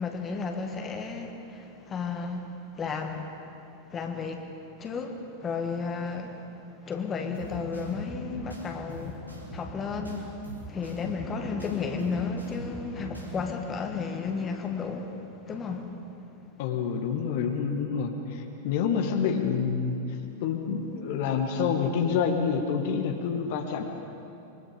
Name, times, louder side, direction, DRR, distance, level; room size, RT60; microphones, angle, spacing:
voice 1, 0.0-2.5 2.7-3.4 3.9-4.5 4.8-6.5 6.9-10.4 10.6-15.9, left 5 dB, 25° left, 4 dB, 1.9 m, -33 dB
sound 1, 7.3-13.3, right 2 dB, 85° right, 3.8 m, -42 dB
voice 2, 16.6-20.0 20.4-23.8, left 6 dB, 50° left, 3 dB, 1.9 m, -27 dB
25.5 x 23.0 x 5.2 m, 2.8 s
figure-of-eight pair, 90°, 0 cm